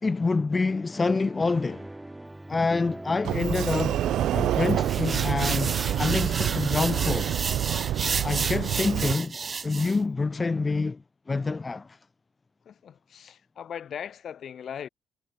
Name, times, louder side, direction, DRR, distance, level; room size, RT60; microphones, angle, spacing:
voice 1, 0.0-1.9 2.5-4.0 4.3-7.3 8.2-9.4 9.6-12.0, left 3 dB, 25° left, 0.6 m, -27 dB
sound 1, 0.9-7.5, right 1 dB, 10° right, 3.3 m, -42 dB
Sliding door, 3.3-9.1, right 12 dB, 80° right, 0.9 m, -27 dB
sound 2, 4.8-10.0, right 5 dB, 35° right, 2.0 m, -32 dB
voice 2, 12.6-14.9, left 8 dB, 60° left, 6.1 m, -39 dB
cardioid pair, 90°, 0 cm